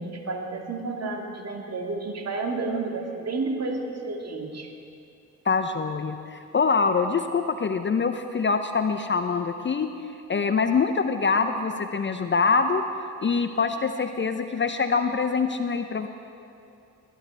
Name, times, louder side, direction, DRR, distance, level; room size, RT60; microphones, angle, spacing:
voice 1, 0.0-4.7, right 3 dB, 40° right, 2 dB, 2.1 m, -31 dB
voice 2, 5.5-9.9 10.3-12.8 13.2-16.1, left 5 dB, 30° left, 8 dB, 0.7 m, -24 dB
20.0 x 12.0 x 3.4 m, 2.5 s
hypercardioid pair, 50°, 40 cm